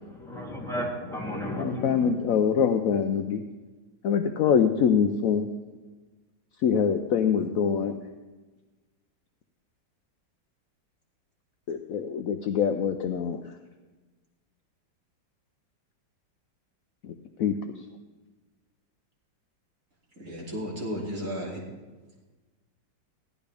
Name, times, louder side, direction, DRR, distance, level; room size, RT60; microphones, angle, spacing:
voice 1, 0.0-2.1, left 1 dB, ahead, -6 dB, 2.9 m, -33 dB
voice 2, 1.6-3.4 4.0-5.5 6.6-8.0 11.7-13.4 17.0-17.7, left 7 dB, 70° left, 7 dB, 0.8 m, -24 dB
voice 3, 20.2-21.6, equal, 45° right, -6 dB, 3.1 m, -33 dB
16.0 x 12.0 x 3.4 m, 1.2 s
omnidirectional pair, 2.0 m